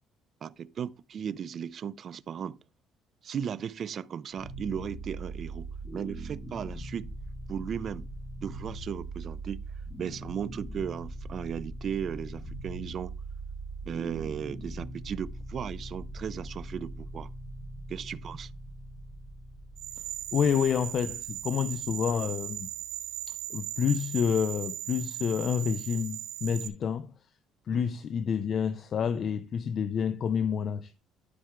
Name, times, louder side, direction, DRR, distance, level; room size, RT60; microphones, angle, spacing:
voice 1, 0.4-2.6 3.2-7.1 7.5-8.1 8.4-9.6 10.0-13.1 13.9-17.3 17.9-18.5 27.7-27.8, right 8 dB, 40° right, 0.4 m, -36 dB
sound 1, 4.3-23.4, right 2 dB, 5° left, 2.5 m, -41 dB
sound 2, 19.8-26.7, right 13 dB, 80° right, 0.9 m, -38 dB
voice 2, 20.3-22.7 23.3-27.1 27.7-30.9, left 7 dB, 45° left, 0.5 m, -29 dB
12.0 x 4.5 x 3.7 m
cardioid pair, 140°, 0 cm